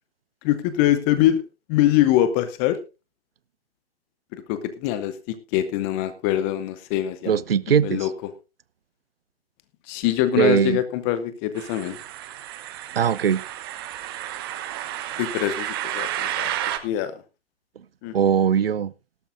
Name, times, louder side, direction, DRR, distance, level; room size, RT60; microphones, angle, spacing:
voice 1, 0.4-1.4 1.7-2.8 4.3-7.3 7.8-8.1 9.9-12.0 15.2-16.5 16.8-17.1 18.0-18.1, left 12 dB, 15° left, 0.6 m, -23 dB
voice 2, 7.3-8.1 10.4-10.8 12.9-13.4 18.1-18.9, right 8 dB, 60° right, 0.7 m, -20 dB
sound 1, 11.5-16.8, right 12 dB, 20° right, 0.9 m, -31 dB
18.0 x 12.0 x 2.5 m
figure-of-eight pair, 135°, 34 cm